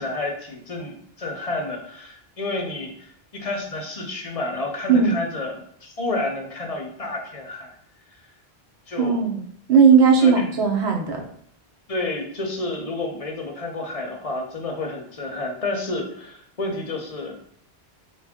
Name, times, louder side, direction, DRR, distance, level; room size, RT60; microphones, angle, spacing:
voice 1, 0.0-7.8 8.9-9.2 10.2-10.3 11.9-17.4, left 2 dB, 45° left, 2 dB, 0.5 m, -30 dB
voice 2, 9.0-11.2, right 6 dB, 85° right, 1 dB, 1.0 m, -17 dB
3.5 x 2.3 x 3.4 m, 0.67 s
omnidirectional pair, 1.1 m